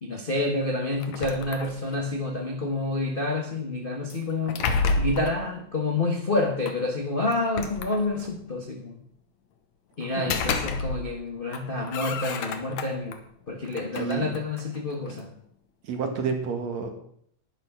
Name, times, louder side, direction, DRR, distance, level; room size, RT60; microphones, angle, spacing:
voice 1, 0.0-4.6 5.0-9.0 10.0-13.2 13.5-15.3, left 2 dB, 35° left, 2 dB, 0.8 m, -28 dB
sound 1, 1.0-2.1 4.1-5.4 6.7-6.8 7.3-8.4 10.0-11.2 11.5-13.2 13.7-15.3, left 4 dB, 75° left, 2.4 m, -30 dB
voice 2, 14.0-14.3 15.8-16.9, right 6 dB, 65° right, 4 dB, 3.1 m, -29 dB
11.0 x 10.5 x 5.9 m, 0.65 s
omnidirectional pair, 3.3 m